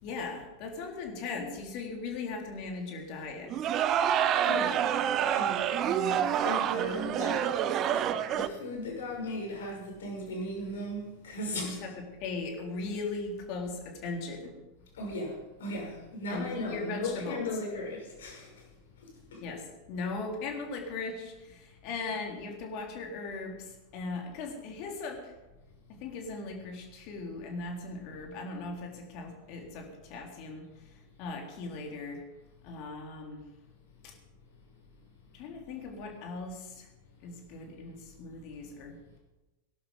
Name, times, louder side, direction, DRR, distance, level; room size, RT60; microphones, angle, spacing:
voice 1, 0.0-3.6 11.5-14.5 16.3-17.6 19.4-25.3 26.0-30.7 31.2-32.2 32.6-33.5 34.0-34.1 35.3-36.9 37.2-39.2, left 3 dB, 40° left, 2 dB, 3.8 m, -38 dB
sound 1, 3.5-8.5, right 9 dB, 35° right, 0.9 m, -27 dB
voice 2, 4.4-5.0 5.3-7.5 7.9-8.1 8.3-11.9 14.9-18.7 19.0-19.4, left 1 dB, 60° left, 0 dB, 6.2 m, -37 dB
19.0 x 11.5 x 5.5 m, 1.1 s
figure-of-eight pair, 90°, 0 cm